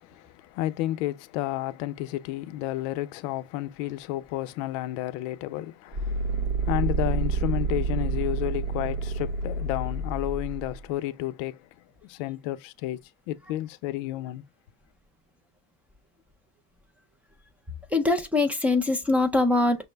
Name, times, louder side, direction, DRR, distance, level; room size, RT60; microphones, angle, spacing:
voice 1, 0.0-11.7 12.0-13.0 13.3-14.4, left 15 dB, 85° left, 0.6 m, -31 dB
sound 1, 5.9-10.8, right 4 dB, 60° right, 1.4 m, -28 dB
voice 2, 17.9-19.9, left 2 dB, 5° right, 0.4 m, -23 dB
5.9 x 2.1 x 3.3 m
cardioid pair, 150°, 37 cm